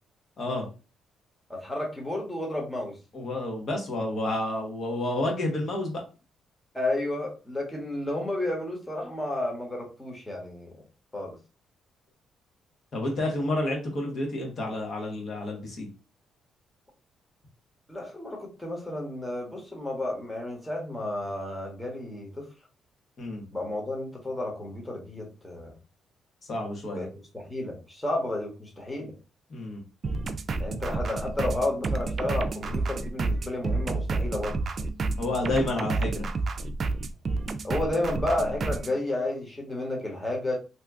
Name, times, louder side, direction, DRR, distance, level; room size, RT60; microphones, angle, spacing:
voice 1, 1.5-3.0 6.7-10.7 11.1-11.4 17.9-22.5 23.5-25.7 26.9-27.1 27.3-29.1 30.6-34.6 37.6-40.5, left 1 dB, 10° left, -1 dB, 1.2 m, -31 dB
voice 2, 3.1-6.0 12.9-15.9 23.2-23.4 26.4-27.0 29.5-29.8 35.2-36.2, left 1 dB, 55° left, 0 dB, 1.2 m, -30 dB
sound 1, 30.0-38.9, right 3 dB, 45° right, 0.4 m, -30 dB
2.8 x 2.4 x 3.5 m, 0.32 s
cardioid pair, 90°, 0 cm